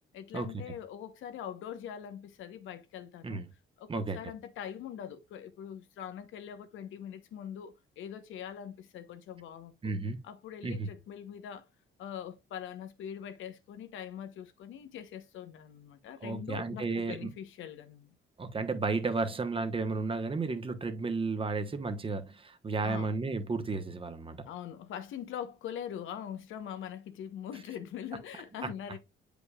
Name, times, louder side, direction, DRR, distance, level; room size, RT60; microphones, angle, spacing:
voice 1, 0.1-3.4 3.8-9.9 10.2-11.7 12.0-18.1 22.8-23.1 24.4-29.0, left 9 dB, 85° left, 0.9 m, -43 dB
voice 2, 9.8-10.2 10.6-10.9 16.2-17.3 18.4-24.4 28.6-28.7, right 3 dB, 25° right, 1.0 m, -33 dB
8.0 x 5.1 x 2.3 m
cardioid pair, 90°, 20 cm